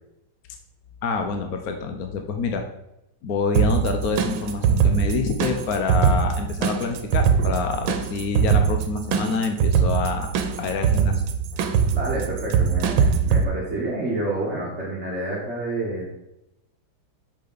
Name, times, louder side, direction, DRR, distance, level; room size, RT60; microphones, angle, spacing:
voice 1, 1.0-2.6 3.2-10.3 10.6-11.2, left 4 dB, 60° left, 5 dB, 1.2 m, -27 dB
sound 1, 3.5-13.4, right 6 dB, 90° right, 1.6 m, -22 dB
voice 2, 11.6-16.1, right 2 dB, 35° right, -5 dB, 1.8 m, -29 dB
8.4 x 6.7 x 4.1 m, 0.87 s
omnidirectional pair, 2.1 m